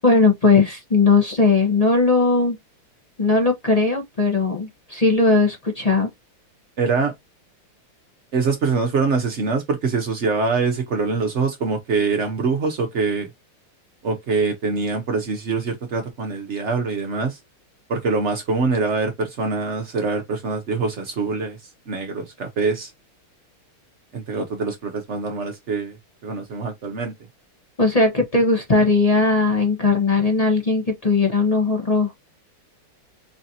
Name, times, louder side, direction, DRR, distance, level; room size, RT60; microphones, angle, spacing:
voice 1, 0.0-2.6 3.2-6.1 27.8-32.1, left 3 dB, 40° left, 0.5 m, -18 dB
voice 2, 6.8-7.1 8.3-13.3 14.0-17.4 17.9-21.6 21.9-22.9 24.1-26.0 26.2-27.1, right 4 dB, 70° right, 0.6 m, -24 dB
4.9 x 2.7 x 2.7 m
omnidirectional pair, 2.4 m